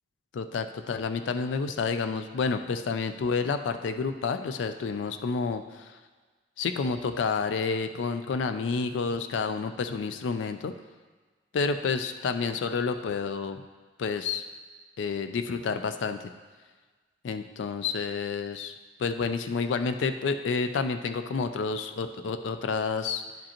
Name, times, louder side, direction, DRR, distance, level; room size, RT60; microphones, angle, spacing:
voice 1, 0.3-6.0 6.6-10.7 11.5-13.6 14.0-14.4 15.0-16.2 17.2-18.7 19.0-23.2, left 5 dB, 75° left, 8 dB, 0.4 m, -29 dB
10.5 x 5.1 x 2.9 m, 1.4 s
head